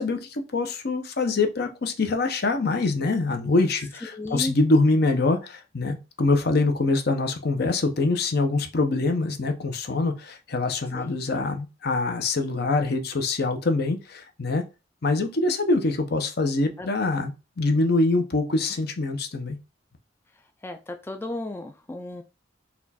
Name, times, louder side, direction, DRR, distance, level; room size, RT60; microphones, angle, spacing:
voice 1, 0.0-14.6 15.0-19.6, left 3 dB, 55° left, 0.7 m, -24 dB
voice 2, 4.0-4.6 10.9-11.2 16.8-16.9 20.6-22.2, left 1 dB, 10° left, 0.3 m, -34 dB
4.2 x 2.3 x 4.1 m
head